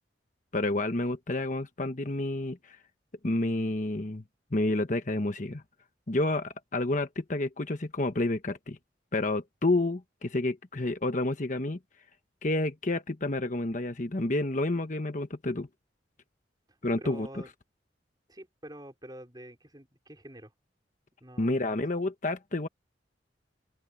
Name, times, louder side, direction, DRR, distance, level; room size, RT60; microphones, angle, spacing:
voice 1, 0.5-2.8 3.2-4.2 4.5-5.6 6.1-8.8 9.1-11.8 12.4-15.7 16.8-17.3 21.4-22.7, left 2 dB, 45° left, 1.2 m, -29 dB
voice 2, 17.0-17.5 18.3-20.5 21.2-21.8, right 1 dB, 20° right, 5.0 m, -47 dB
open air
head